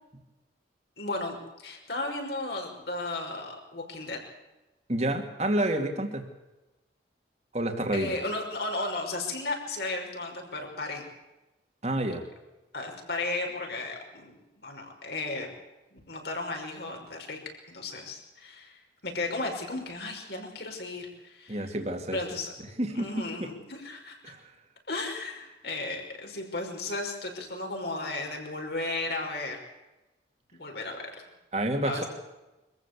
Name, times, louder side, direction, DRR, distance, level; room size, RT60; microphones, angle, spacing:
voice 1, 1.0-4.2 7.9-11.0 12.7-15.5 15.9-17.4 17.7-21.8 22.1-22.5 23.0-24.3 24.9-29.6 30.6-31.1 31.8-32.1, left 2 dB, 60° left, 2 dB, 5.7 m, -35 dB
voice 2, 4.9-6.2 7.5-8.1 11.8-12.2 21.5-22.2 22.8-23.5 24.2-24.4 31.5-32.0, right 1 dB, 35° right, 4 dB, 2.5 m, -29 dB
24.5 x 15.0 x 8.4 m, 1.0 s
head